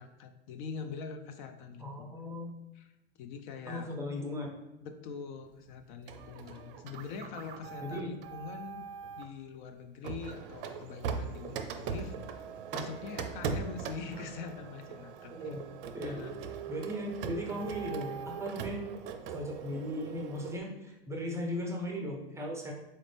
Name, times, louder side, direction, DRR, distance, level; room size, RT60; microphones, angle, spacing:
voice 1, 0.0-2.1 2.7-2.9 3.2-4.0 4.8-8.9 9.2-15.3 16.0-16.3, left 5 dB, 50° left, 8 dB, 0.4 m, -43 dB
voice 2, 1.8-2.5 3.7-4.6 7.8-8.1 15.3-15.6 15.9-16.2 16.7-18.8 19.2-22.7, left 1 dB, 10° right, 0 dB, 0.5 m, -37 dB
Printer, 6.1-9.3 10.0-20.6, right 6 dB, 60° right, 0.5 m, -40 dB
4.2 x 2.5 x 3.3 m, 0.94 s
hypercardioid pair, 110°, 31 cm